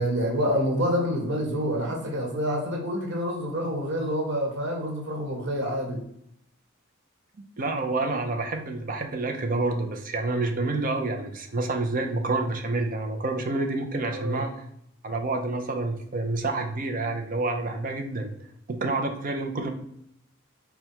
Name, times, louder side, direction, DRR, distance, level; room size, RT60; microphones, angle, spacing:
voice 1, 0.0-6.0 14.1-14.4, equal, 60° right, 0 dB, 1.4 m, -27 dB
voice 2, 7.6-14.6 15.0-18.3 18.7-19.7, right 2 dB, 40° right, 5 dB, 0.6 m, -28 dB
5.0 x 2.3 x 4.4 m, 0.72 s
head